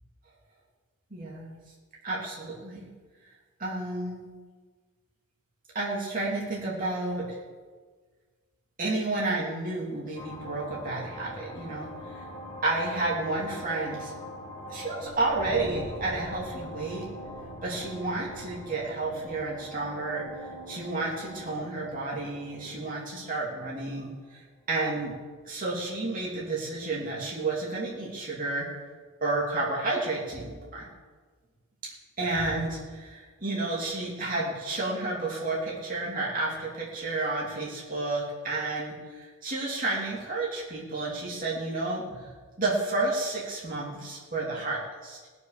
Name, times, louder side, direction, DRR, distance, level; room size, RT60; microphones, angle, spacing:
voice 1, 1.1-1.6 2.0-2.9 3.6-4.3 5.7-7.4 8.8-12.2 12.6-14.1 14.7-17.1 17.6-24.4 24.7-25.1 25.4-28.7 29.2-30.9 32.2-42.3 42.6-45.2, right 2 dB, 40° right, -5 dB, 3.1 m, -31 dB
sound 1, 10.2-24.3, equal, 30° left, 1.9 m, -42 dB
18.5 x 7.1 x 6.8 m, 1.5 s
head